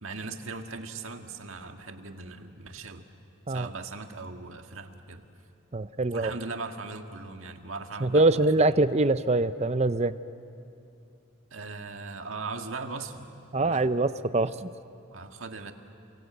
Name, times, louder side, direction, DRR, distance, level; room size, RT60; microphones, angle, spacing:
voice 1, 0.0-3.0 3.5-5.2 6.1-8.8 11.5-13.3 13.6-13.9 15.1-15.7, right 3 dB, 70° right, 5 dB, 1.7 m, -39 dB
voice 2, 5.7-6.3 8.0-10.1 13.5-14.7, right 2 dB, 30° right, 13 dB, 0.6 m, -24 dB
29.0 x 24.5 x 8.0 m, 2.7 s
head